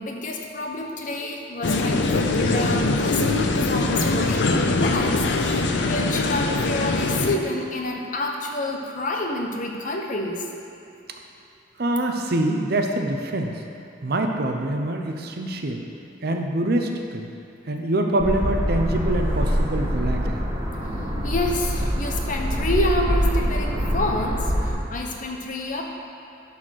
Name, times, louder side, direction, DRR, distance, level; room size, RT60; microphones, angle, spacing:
voice 1, 0.0-10.5 21.2-25.8, left 2 dB, 45° left, 1 dB, 0.9 m, -28 dB
sound 1, 1.6-7.4, left 2 dB, 65° left, 0.6 m, -22 dB
voice 2, 11.8-13.6 14.0-15.8 16.2-17.3 17.7-20.5, right 1 dB, 55° right, 4 dB, 0.7 m, -25 dB
sound 2, 18.2-24.7, equal, 25° right, 1.5 m, -24 dB
11.0 x 4.3 x 6.4 m, 2.7 s
head